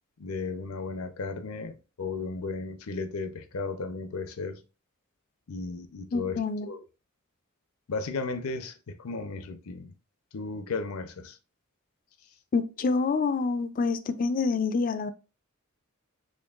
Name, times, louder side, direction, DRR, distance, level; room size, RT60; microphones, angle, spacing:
voice 1, 0.2-4.6 5.5-6.8 7.9-9.9 10.3-11.4, left 3 dB, 90° left, 0.6 m, -35 dB
voice 2, 6.1-6.7 12.5-15.1, left 4 dB, 40° left, 0.3 m, -27 dB
4.4 x 3.1 x 2.3 m
head